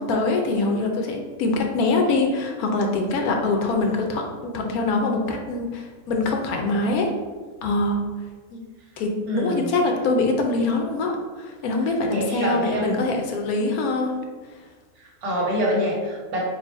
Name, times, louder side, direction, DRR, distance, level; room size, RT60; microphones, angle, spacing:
voice 1, 0.0-7.1 7.6-8.0 8.5-8.6 9.0-14.1, left 3 dB, 80° left, 2 dB, 1.1 m, -24 dB
voice 2, 9.3-9.7 12.1-13.0 15.0-16.4, equal, 80° right, -4 dB, 1.5 m, -25 dB
4.2 x 2.0 x 4.1 m, 1.4 s
omnidirectional pair, 1.6 m